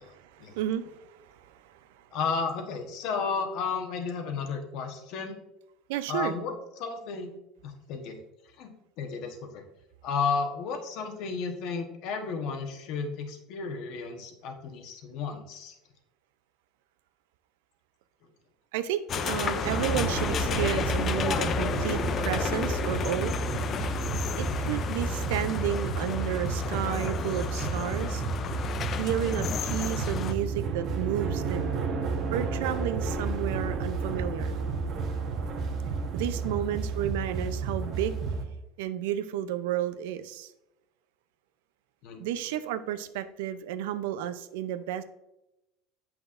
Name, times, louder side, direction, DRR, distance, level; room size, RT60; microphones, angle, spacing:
voice 1, 0.0-2.1 5.9-6.3 18.7-23.4 24.4-28.2 29.0-31.7 32.3-34.6 36.1-38.2 38.8-40.5 42.2-45.0, right 11 dB, 90° right, 12 dB, 0.5 m, -32 dB
voice 2, 2.1-5.4 6.1-6.5 6.8-7.3 7.6-8.2 8.6-8.7 9.0-9.6 10.0-15.7 29.9-30.0 36.3-36.8 42.0-42.2, left 5 dB, 55° left, 5 dB, 1.1 m, -33 dB
sound 1, 19.1-30.3, left 7 dB, 30° left, 0.4 m, -32 dB
sound 2, 19.6-38.4, right 4 dB, 40° right, 1.1 m, -31 dB
7.9 x 6.1 x 2.5 m, 0.91 s
cardioid pair, 150°, 0 cm